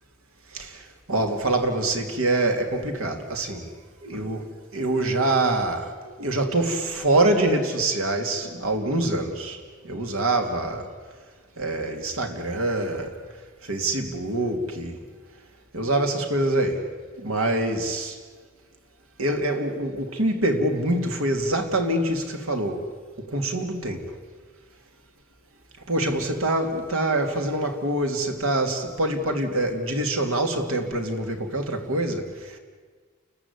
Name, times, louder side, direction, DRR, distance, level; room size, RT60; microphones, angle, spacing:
voice 1, 0.5-3.7 4.0-9.6 9.8-10.9 11.6-13.1 13.6-15.0 15.7-16.9 17.2-18.1 19.2-22.9 23.2-24.0 25.9-32.6, right 2 dB, 80° right, 2.9 m, -25 dB
30.0 x 14.5 x 9.8 m
head